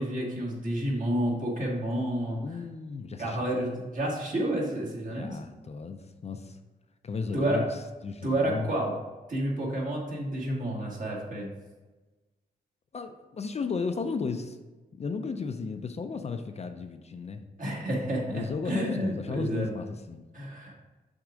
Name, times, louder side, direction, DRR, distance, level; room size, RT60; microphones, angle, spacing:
voice 1, 0.0-2.4 3.2-5.4 7.3-7.6 8.2-8.9 9.3-11.5 17.6-19.7 20.3-20.7, right 1 dB, 50° right, -2 dB, 1.8 m, -30 dB
voice 2, 2.4-3.5 5.1-6.6 7.0-8.7 12.9-14.6 15.0-17.4 18.3-20.3, left 4 dB, 40° left, 7 dB, 0.4 m, -34 dB
6.2 x 3.6 x 4.9 m, 1.2 s
wide cardioid pair, 120°, 17 cm